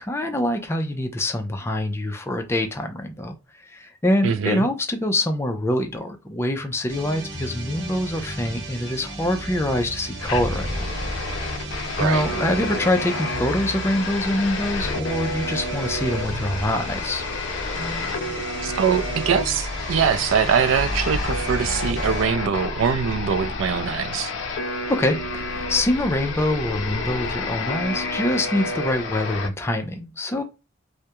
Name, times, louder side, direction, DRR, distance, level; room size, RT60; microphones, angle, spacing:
voice 1, 0.0-3.4 3.7-10.8 11.2-11.7 12.0-17.2 24.6-30.4, left 1 dB, 15° left, 0.3 m, -25 dB
voice 2, 4.2-4.7 12.0-12.2 18.6-24.3, right 7 dB, 85° right, 0.3 m, -23 dB
sound 1, 6.9-22.3, right 1 dB, 65° right, 0.7 m, -33 dB
sound 2, 10.2-29.5, left 3 dB, 75° left, 0.5 m, -30 dB
2.3 x 2.0 x 2.8 m
head